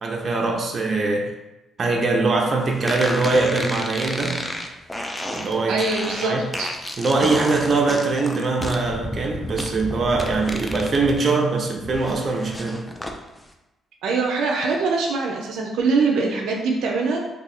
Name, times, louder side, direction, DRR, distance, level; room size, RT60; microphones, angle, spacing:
voice 1, 0.0-1.3 1.8-4.4 5.3-5.8 6.2-6.4 7.0-12.9, right 3 dB, 45° right, 1 dB, 0.6 m, -22 dB
sound 1, 2.9-11.2 11.5-13.2, left 1 dB, 10° left, 0.4 m, -31 dB
voice 2, 5.7-6.7 14.0-17.2, right 4 dB, 85° right, 0 dB, 0.4 m, -23 dB
2.6 x 2.4 x 4.1 m, 1.0 s
cardioid pair, 90°, 0 cm